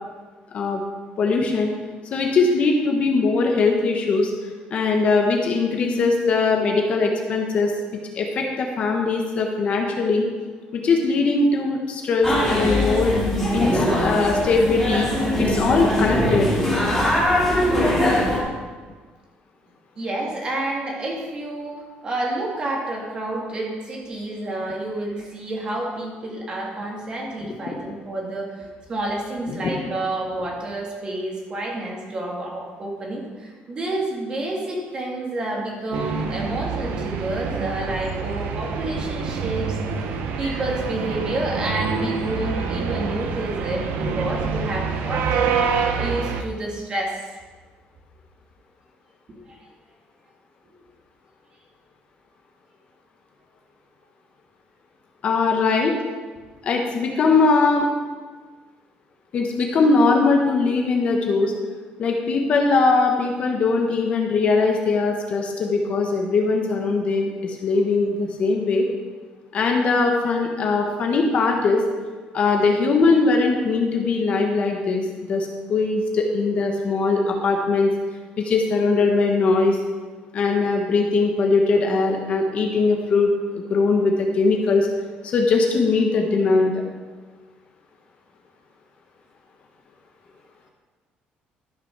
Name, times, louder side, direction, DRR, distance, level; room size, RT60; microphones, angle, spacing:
voice 1, 1.2-1.7 2.1-4.3 4.7-10.3 10.7-13.2 13.5-15.1 15.4-16.5 29.5-29.6 55.2-55.9 56.6-57.9 59.3-61.5 62.0-68.8 69.5-71.8 72.3-77.9 78.4-79.8 80.3-84.9 85.2-86.8, left 3 dB, 40° left, 2 dB, 1.2 m, -20 dB
sound 1, 12.2-18.4, equal, 5° left, 3.2 m, -21 dB
voice 2, 20.0-39.8 40.4-45.6 46.0-47.2 49.3-49.7, right 1 dB, 25° right, -1 dB, 2.3 m, -29 dB
sound 2, 35.9-46.4, right 5 dB, 80° right, 1.0 m, -26 dB
13.0 x 6.0 x 6.0 m, 1.4 s
cardioid pair, 175°, 3 cm